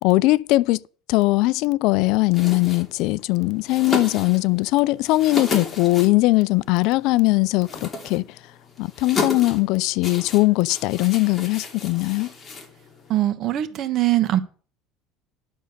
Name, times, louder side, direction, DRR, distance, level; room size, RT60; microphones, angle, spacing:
voice 1, 0.0-0.8 1.1-8.2 8.8-12.3, left 20 dB, 65° left, 0.4 m, -20 dB
sound 1, 2.3-13.2, left 3 dB, 20° left, 2.9 m, -34 dB
voice 2, 13.1-14.4, right 14 dB, 50° right, 1.3 m, -21 dB
11.5 x 6.4 x 6.6 m
cardioid pair, 140°, 0 cm